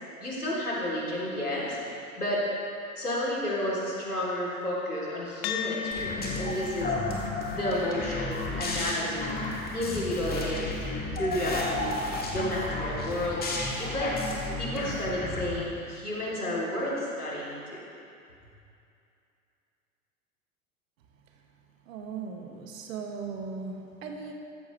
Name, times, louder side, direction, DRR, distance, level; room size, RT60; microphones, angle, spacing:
voice 1, 0.2-1.8 2.2-2.4 3.0-6.9 7.5-9.4 9.7-11.9 12.3-13.4 13.8-14.1 14.6-17.8, left 1 dB, 90° left, -5 dB, 3.2 m, -31 dB
sound 1, 5.4-14.1, left 8 dB, 45° left, 1.0 m, -40 dB
sound 2, 5.9-15.5, left 2 dB, 20° left, 2.1 m, -33 dB
voice 2, 21.9-24.3, right 5 dB, 60° right, 3 dB, 1.7 m, -38 dB
14.5 x 12.5 x 3.2 m, 2.5 s
figure-of-eight pair, 90°, 44 cm